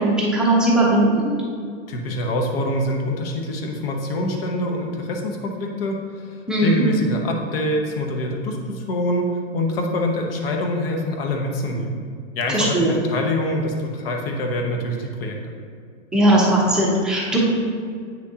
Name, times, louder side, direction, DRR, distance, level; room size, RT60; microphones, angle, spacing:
voice 1, 0.0-1.3 6.5-6.8 12.5-13.0 16.1-17.4, right 1 dB, ahead, -5 dB, 0.7 m, -18 dB
voice 2, 1.9-12.0 12.3-15.4, left 1 dB, 50° left, 2 dB, 1.1 m, -25 dB
8.6 x 6.2 x 2.9 m, 2.1 s
hypercardioid pair, 155°, 37 cm